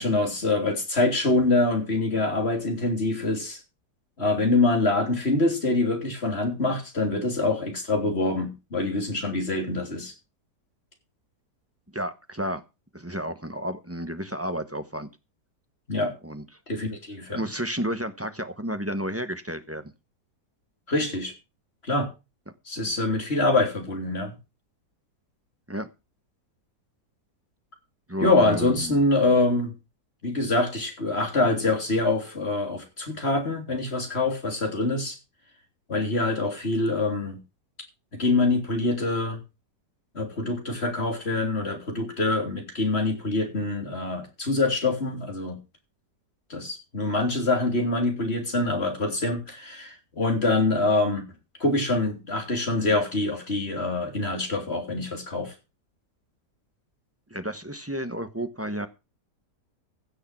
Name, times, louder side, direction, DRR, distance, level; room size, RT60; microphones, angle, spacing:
voice 1, 0.0-3.6 4.2-10.1 15.9-16.1 16.7-17.4 20.9-21.3 21.8-22.1 22.7-24.4 28.2-29.7 30.2-35.2 35.9-37.4 38.1-39.4 40.2-45.6 46.5-51.2 51.6-55.5, left 2 dB, 35° left, 4 dB, 3.6 m, -25 dB
voice 2, 11.9-12.6 12.9-15.1 16.2-16.4 17.3-19.9 25.7-25.9 28.1-29.0 57.3-58.9, equal, 10° right, 10 dB, 0.9 m, -31 dB
16.0 x 6.7 x 6.0 m, 0.28 s
omnidirectional pair, 1.8 m